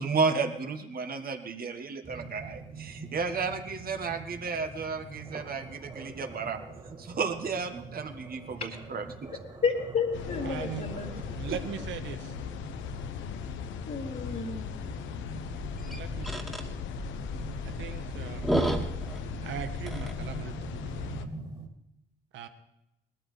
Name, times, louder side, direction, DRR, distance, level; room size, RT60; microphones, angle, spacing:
voice 1, 0.0-6.6 7.0-9.3 11.5-11.6, right 4 dB, 50° right, 6 dB, 1.6 m, -32 dB
sound 1, 2.0-21.7, right 3 dB, 25° right, 2.7 m, -45 dB
voice 2, 9.6-11.1 13.9-14.7, left 5 dB, 45° left, -3 dB, 2.2 m, -31 dB
sound 2, 10.1-21.2, left 8 dB, 70° left, 0.8 m, -39 dB
voice 3, 10.4-10.9 11.3-12.3 15.9-16.7 17.6-18.6 19.4-21.3 22.3-22.5, right 9 dB, 70° right, 8 dB, 1.3 m, -40 dB
sound 3, 15.3-20.4, equal, ahead, 2.1 m, -33 dB
20.0 x 13.5 x 3.4 m, 0.88 s
hypercardioid pair, 55°, 20 cm